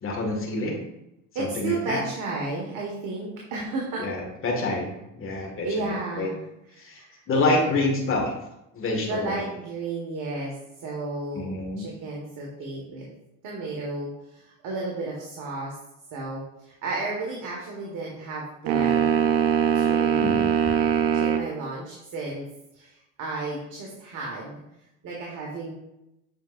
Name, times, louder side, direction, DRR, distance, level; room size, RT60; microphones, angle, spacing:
voice 1, 0.0-0.7 1.4-2.0 4.0-6.3 6.8-7.0 7.3-8.3 8.7-9.4 11.3-11.9 20.2-20.5, left 2 dB, 35° left, -1 dB, 1.9 m, -27 dB
voice 2, 1.3-4.0 5.3-6.4 6.8-7.2 9.0-10.5 10.8-13.1 13.4-15.7 16.1-19.2 19.7-20.4 21.1-22.4 22.7-24.6 25.0-25.7, right 3 dB, 60° right, -3 dB, 1.6 m, -33 dB
sound 1, 18.7-21.5, right 8 dB, 85° right, 0.7 m, -22 dB
8.1 x 4.8 x 2.5 m, 0.88 s
supercardioid pair, 80°, 36 cm